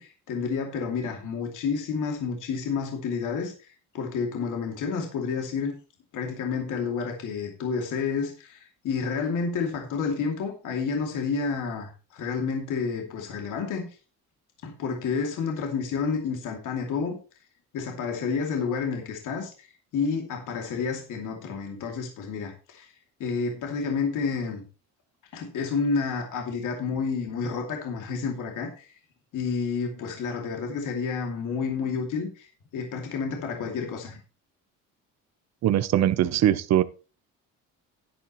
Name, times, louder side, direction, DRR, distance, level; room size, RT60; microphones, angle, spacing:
voice 1, 0.0-5.7 6.1-13.9 14.6-17.2 17.7-19.7 19.9-22.9 23.2-24.6 25.3-29.0 29.3-34.2, left 5 dB, 70° left, 2 dB, 2.7 m, -30 dB
voice 2, 35.6-36.8, right 12 dB, 55° right, 15 dB, 0.8 m, -21 dB
11.0 x 10.5 x 3.1 m, 0.33 s
cardioid pair, 140°, 33 cm